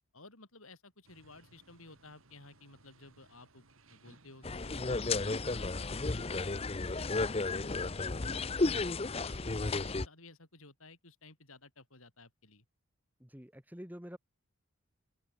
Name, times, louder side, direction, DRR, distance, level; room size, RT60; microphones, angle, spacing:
voice 1, 0.1-8.9 9.2-12.6, left 3 dB, 80° left, 7.9 m, -56 dB
sound 1, 1.0-8.1, right 3 dB, 75° right, 4.1 m, -64 dB
sound 2, 4.4-10.1, left 3 dB, 25° left, 0.6 m, -33 dB
voice 2, 13.2-14.2, equal, 10° right, 1.4 m, -47 dB
open air
head